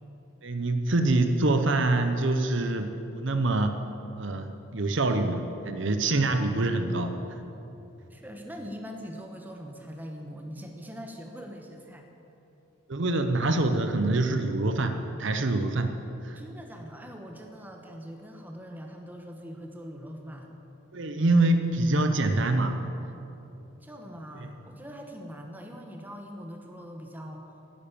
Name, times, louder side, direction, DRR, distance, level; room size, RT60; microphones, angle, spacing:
voice 1, 0.4-3.7 4.2-7.1 12.9-15.9 16.2-16.4 20.9-22.8, right 2 dB, 60° right, 7 dB, 0.8 m, -25 dB
voice 2, 8.1-12.1 16.3-20.5 23.8-27.6, equal, 10° right, 2 dB, 1.1 m, -42 dB
11.5 x 10.5 x 8.9 m, 3.0 s
head